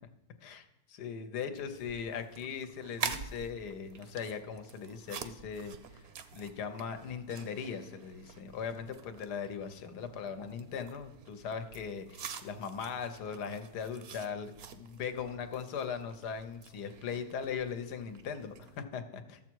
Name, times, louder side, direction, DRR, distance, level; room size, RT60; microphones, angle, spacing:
voice 1, 0.4-6.0 6.3-19.4, left 6 dB, 85° left, 9 dB, 1.4 m, -39 dB
sound 1, 1.5-18.8, right 7 dB, 60° right, 0.6 m, -47 dB
13.0 x 7.3 x 4.6 m, 0.92 s
omnidirectional pair, 1.7 m